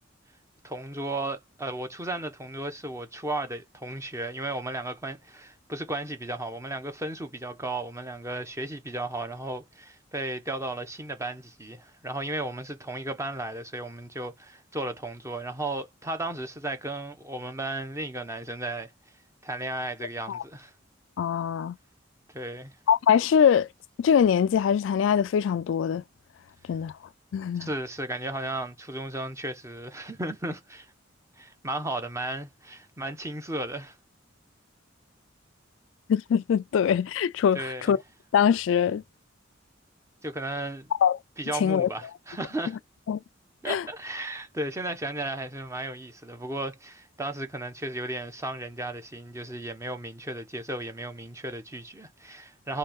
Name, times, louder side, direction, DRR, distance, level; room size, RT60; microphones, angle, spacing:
voice 1, 0.6-18.9 19.4-20.7 22.3-22.7 27.6-30.9 31.4-34.0 37.5-38.0 40.2-40.9 41.4-42.8 43.6-52.8, right 2 dB, 15° right, 0.9 m, -34 dB
voice 2, 21.2-21.8 22.9-23.7 24.0-26.0 26.7-26.9 27.3-27.7 36.1-38.0 38.3-39.0 41.0-41.2 41.5-41.9 43.1-43.2 43.7-43.8, left 8 dB, 90° left, 0.3 m, -23 dB
4.2 x 3.1 x 3.5 m
head